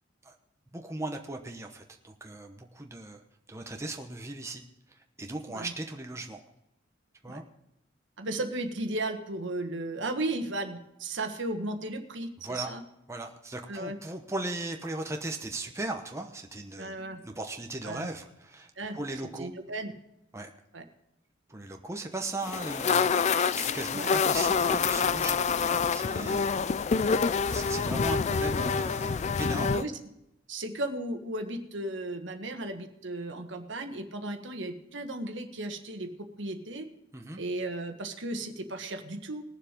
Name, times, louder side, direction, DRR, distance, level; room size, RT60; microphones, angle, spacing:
voice 1, 0.7-3.2 3.5-4.6 4.9-6.4 7.2-7.4 12.4-12.7 13.1-19.5 20.3-20.5 21.5-26.5 26.8-29.8 37.1-37.4, right 2 dB, 15° right, 3 dB, 0.9 m, -38 dB
voice 2, 8.2-12.8 13.7-14.0 16.8-17.2 17.8-18.1 18.8-19.0 19.4-19.9 20.7-20.8 23.9-24.1 26.2-26.4 27.4-27.5 29.7-29.9 30.5-36.1 36.4-36.8 37.4-39.4, right 2 dB, 65° right, 6 dB, 1.4 m, -35 dB
sound 1, 22.4-29.8, left 5 dB, 35° left, 0.4 m, -27 dB
19.5 x 7.3 x 5.1 m, 0.87 s
head